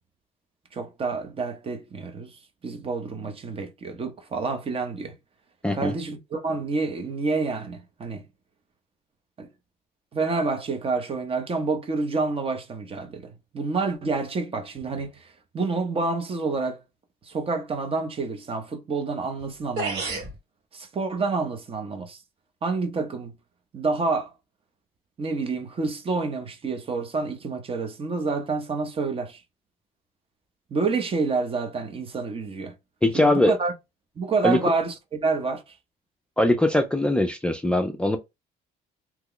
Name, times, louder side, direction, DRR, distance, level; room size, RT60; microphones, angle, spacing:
voice 1, 0.7-5.1 5.7-8.2 9.4-9.5 10.1-16.8 17.2-20.1 20.7-22.2 22.6-23.3 23.7-24.3 25.2-29.4 30.7-32.7 33.1-33.7 34.2-35.7, right 4 dB, 35° right, 0.8 m, -28 dB
voice 2, 5.6-6.0 33.0-33.5 34.4-34.6 36.4-38.2, left 1 dB, 5° left, 0.4 m, -21 dB
sound 1, 19.4-19.5 19.8-20.3, right 3 dB, 80° right, 1.8 m, -29 dB
2.9 x 2.2 x 3.7 m
cardioid pair, 110°, 17 cm